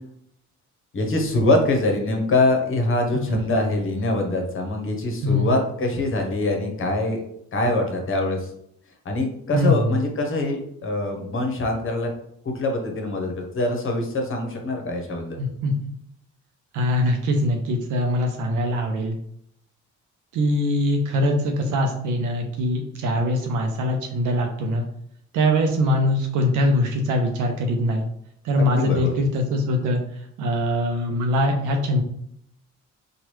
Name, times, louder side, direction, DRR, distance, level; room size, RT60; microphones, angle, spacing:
voice 1, 0.9-7.2 7.5-8.5 9.0-12.1 12.4-15.4 28.6-29.1, left 2 dB, 45° left, 3 dB, 0.8 m, -24 dB
voice 2, 3.1-3.5 5.2-5.6 9.5-9.9 15.4-15.7 16.7-19.1 20.3-24.8 25.3-28.0 28.4-30.0 30.4-32.0, left 1 dB, 80° right, 3 dB, 0.5 m, -22 dB
3.0 x 2.3 x 3.1 m, 0.73 s
cardioid pair, 90°, 30 cm